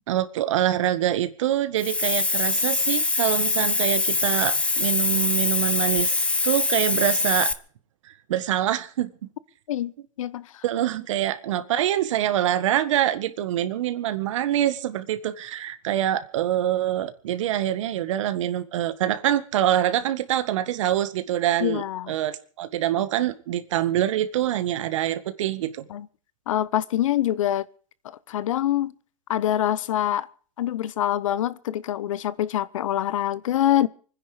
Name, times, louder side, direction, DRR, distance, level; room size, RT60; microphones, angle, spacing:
voice 1, 0.1-7.5 8.3-9.3 10.6-25.8, right 12 dB, 65° right, 1.7 m, -25 dB
Hiss, 1.8-7.5, left 3 dB, 5° left, 0.8 m, -23 dB
voice 2, 10.2-10.6 21.6-22.1 25.9-26.1 26.5-27.7 28.0-28.9 29.3-30.3 30.6-33.9, left 12 dB, 75° left, 1.0 m, -25 dB
25.0 x 10.0 x 5.0 m
hypercardioid pair, 135°, 17 cm